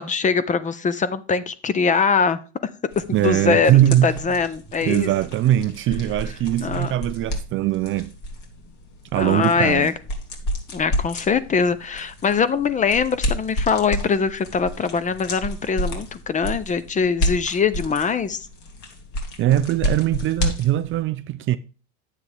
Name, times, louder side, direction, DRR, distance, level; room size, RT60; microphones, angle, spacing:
voice 1, 0.0-2.4 3.0-3.7 4.0-5.1 6.6-6.9 9.2-9.9 10.7-18.5, left 5 dB, 20° left, 0.6 m, -22 dB
sound 1, 2.9-21.0, equal, 50° left, 2.8 m, -31 dB
voice 2, 3.1-4.4 4.8-8.1 9.1-9.9 19.4-21.6, right 13 dB, 35° right, 0.5 m, -21 dB
9.6 x 7.4 x 3.5 m
hypercardioid pair, 95°, 36 cm